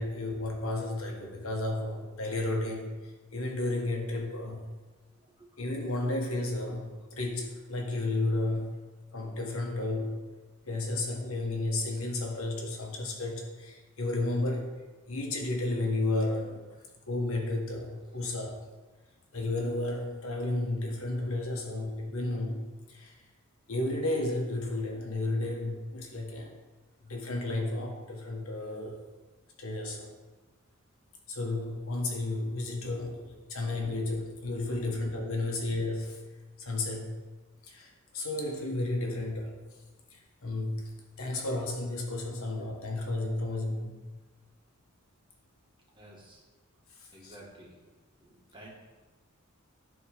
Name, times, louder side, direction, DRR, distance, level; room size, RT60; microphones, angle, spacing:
voice 1, 0.0-4.7 5.6-8.8 9.1-10.1 10.6-14.7 15.1-16.6 17.1-18.6 19.3-22.6 22.9-23.2 23.7-26.5 27.0-29.0 29.6-30.1 31.3-36.2 36.6-37.1 37.6-39.6 40.1-40.8 41.2-44.0 47.0-47.3, left 2 dB, 70° left, 0 dB, 1.5 m, -32 dB
voice 2, 34.6-35.0 46.0-46.4 47.1-47.8 48.2-48.7, right 1 dB, 25° right, -3 dB, 1.8 m, -53 dB
11.0 x 3.7 x 5.2 m, 1.3 s
head